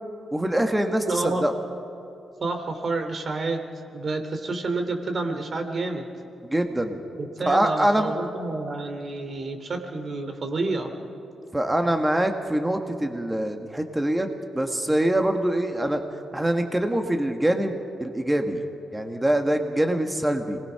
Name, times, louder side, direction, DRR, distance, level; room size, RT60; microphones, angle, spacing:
voice 1, 0.3-1.5 6.4-7.0 7.5-8.1 11.5-16.0 16.3-18.6 18.9-20.6, right 1 dB, 10° right, 5 dB, 1.7 m, -24 dB
voice 2, 1.1-1.4 2.4-3.6 3.9-6.1 7.2-10.9, right 3 dB, 50° right, 6 dB, 2.9 m, -29 dB
26.5 x 20.5 x 5.8 m, 2.8 s
cardioid pair, 70°, 0 cm